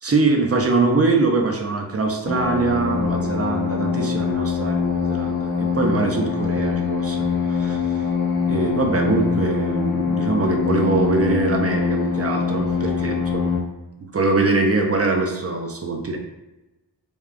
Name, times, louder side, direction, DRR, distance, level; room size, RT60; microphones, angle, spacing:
voice 1, 0.0-7.8 8.5-13.4 14.1-16.2, right 3 dB, 35° right, 3 dB, 0.5 m, -22 dB
sound 1, 2.2-13.6, left 6 dB, 45° left, 0.9 m, -23 dB
3.4 x 2.4 x 2.4 m, 1.0 s
cardioid pair, 50°, 43 cm